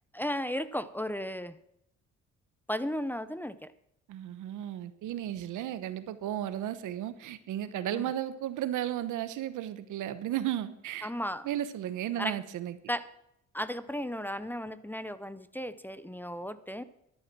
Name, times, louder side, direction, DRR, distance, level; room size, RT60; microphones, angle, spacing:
voice 1, 0.1-1.6 2.7-3.7 7.9-8.1 11.0-11.5 12.2-12.4 12.9-13.1 13.5-16.8, equal, 5° left, 14 dB, 0.6 m, -35 dB
voice 2, 4.1-11.1 11.4-12.8, right 12 dB, 85° right, 13 dB, 1.0 m, -34 dB
12.5 x 10.0 x 6.1 m, 0.79 s
cardioid pair, 90°, 30 cm